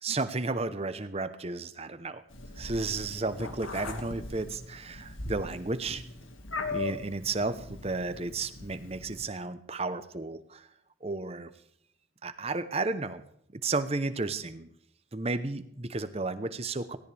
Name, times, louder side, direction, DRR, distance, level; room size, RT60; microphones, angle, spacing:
voice 1, 0.0-2.2 2.6-6.0 6.7-10.7 11.0-11.5 12.2-13.2 13.5-14.7 15.1-17.0, right 3 dB, 30° right, 11 dB, 0.8 m, -33 dB
Meow, 2.3-9.2, left 3 dB, 85° left, 2.0 m, -40 dB
17.5 x 17.0 x 3.4 m, 0.70 s
head